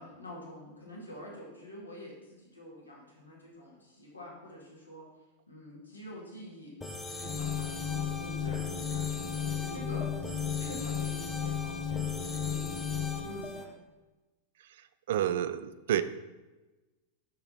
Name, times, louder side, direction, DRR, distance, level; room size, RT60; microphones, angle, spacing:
voice 1, 0.0-5.1 5.5-6.8 7.1-13.7, left 1 dB, 80° left, -4 dB, 2.3 m, -47 dB
sound 1, 6.8-13.7, left 2 dB, 15° left, 0.8 m, -41 dB
sound 2, 7.2-13.2, left 8 dB, 40° left, 1.1 m, -34 dB
voice 2, 15.1-16.0, right 11 dB, 55° right, 13 dB, 0.4 m, -29 dB
6.6 x 6.4 x 4.3 m, 1.1 s
figure-of-eight pair, 90°, 0 cm